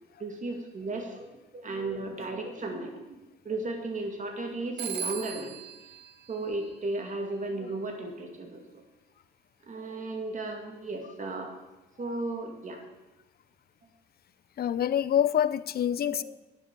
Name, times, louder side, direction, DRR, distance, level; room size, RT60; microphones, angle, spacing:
voice 1, 0.2-5.5 6.3-8.6 9.6-11.6 12.0-12.8 16.1-16.2, right 2 dB, 40° right, 3 dB, 2.4 m, -35 dB
Telephone, 4.8-7.3, right 8 dB, 55° right, 0.7 m, -39 dB
voice 2, 14.6-16.2, left 10 dB, 50° left, 17 dB, 0.5 m, -26 dB
10.5 x 7.6 x 6.9 m, 1.1 s
cardioid pair, 90°, 20 cm